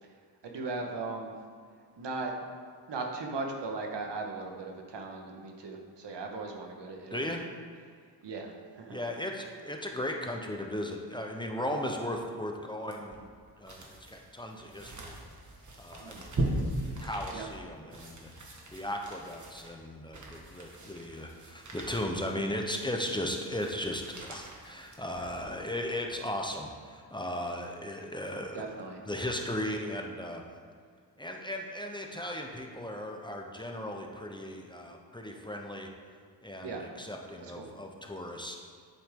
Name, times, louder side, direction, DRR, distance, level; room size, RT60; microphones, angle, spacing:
voice 1, 0.4-1.3 2.0-2.3 2.9-7.3 8.2-9.0 16.0-16.3 17.3-17.5 28.5-29.0 36.6-36.8 37.4-37.7, right 3 dB, 80° right, 1 dB, 1.4 m, -38 dB
voice 2, 7.1-7.4 8.9-15.2 15.8-18.3 18.7-28.6 29.1-30.4 31.2-35.9 36.4-38.5, left 1 dB, 10° left, 1 dB, 0.8 m, -37 dB
sound 1, 12.9-25.6 26.0-26.1, right 1 dB, 45° right, 1.6 m, -39 dB
10.5 x 8.1 x 3.7 m, 2.1 s
wide cardioid pair, 140°, 42 cm